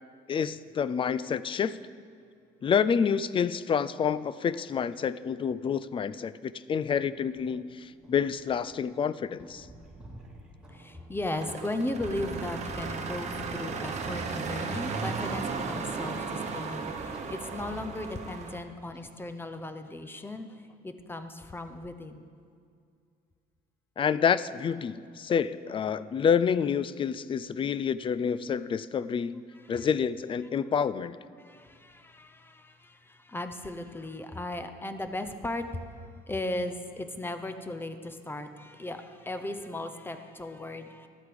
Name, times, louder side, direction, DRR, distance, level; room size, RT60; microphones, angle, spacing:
voice 1, 0.3-1.8 2.6-9.7 24.0-29.4 29.7-31.2, left 7 dB, 30° left, 17 dB, 0.3 m, -28 dB
sound 1, 6.9-19.2, right 1 dB, 5° right, 2.5 m, -49 dB
voice 2, 10.7-22.3 29.5-29.9 31.4-41.1, left 1 dB, 15° left, 8 dB, 0.7 m, -37 dB
sound 2, 11.3-18.6, right 4 dB, 45° right, 1.1 m, -35 dB
12.5 x 8.1 x 5.1 m, 2.3 s
cardioid pair, 110°, 17 cm